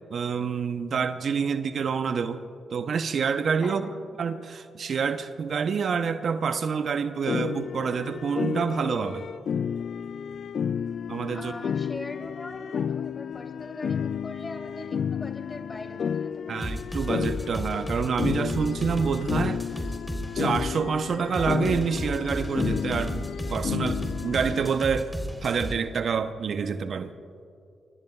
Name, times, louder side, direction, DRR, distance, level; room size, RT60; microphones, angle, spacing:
voice 1, 0.1-2.4 2.7-3.8 4.2-9.3 11.1-11.5 16.5-19.6 20.3-25.1 25.4-27.2, right 6 dB, 60° right, 10 dB, 0.7 m, -27 dB
voice 2, 3.6-4.1 11.3-16.7, left 2 dB, 35° left, 3 dB, 3.3 m, -41 dB
sound 1, 7.3-24.7, left 7 dB, 65° left, 0.3 m, -32 dB
sound 2, 16.6-20.7 21.3-25.8, equal, 5° left, 3.5 m, -33 dB
sound 3, 18.6-24.5, left 3 dB, 85° left, 2.2 m, -54 dB
26.0 x 23.5 x 2.4 m, 2.4 s
supercardioid pair, 45°, 0 cm